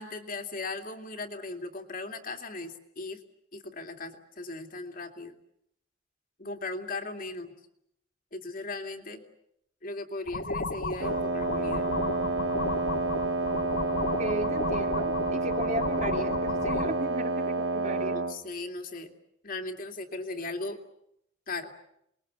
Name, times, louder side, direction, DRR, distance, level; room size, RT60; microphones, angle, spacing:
voice 1, 0.0-3.2 3.5-5.3 6.4-7.6 8.3-9.2 9.8-11.9 17.8-19.1 19.4-20.8 21.5-21.7, left 2 dB, 45° left, 4 dB, 2.5 m, -37 dB
sound 1, 10.3-16.9, left 3 dB, 65° left, 2.3 m, -34 dB
Wind instrument woodwind instrument, 11.0-18.4, right 3 dB, 80° right, 1.3 m, -29 dB
voice 2, 14.2-18.2, right 1 dB, 40° right, 4 dB, 3.1 m, -35 dB
28.0 x 21.5 x 8.2 m, 0.77 s
head